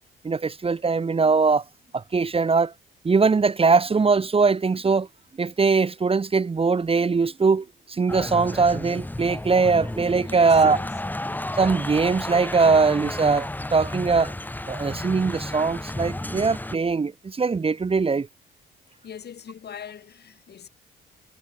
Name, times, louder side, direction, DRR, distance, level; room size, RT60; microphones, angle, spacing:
voice 1, 0.2-1.6 1.9-2.7 3.0-5.1 5.4-10.8 11.6-14.3 14.7-18.3, right 4 dB, 30° right, 1.3 m, -21 dB
sound 1, 8.1-16.8, left 1 dB, 10° left, 2.9 m, -32 dB
voice 2, 10.2-11.0 19.0-20.7, left 8 dB, 55° left, 5.7 m, -41 dB
cardioid pair, 90°, 20 cm